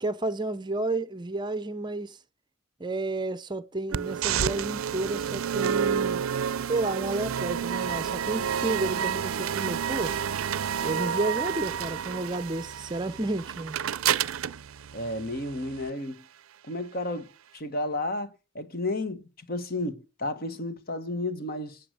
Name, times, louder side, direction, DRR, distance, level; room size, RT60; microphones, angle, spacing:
voice 1, 0.0-2.2 2.8-6.2 6.7-10.2 10.8-13.8, right 2 dB, 20° right, 0.6 m, -31 dB
sound 1, 3.9-15.9, right 8 dB, 85° right, 0.5 m, -30 dB
voice 2, 14.9-16.2 16.6-21.8, left 2 dB, 45° left, 1.3 m, -32 dB
9.7 x 7.9 x 6.6 m
head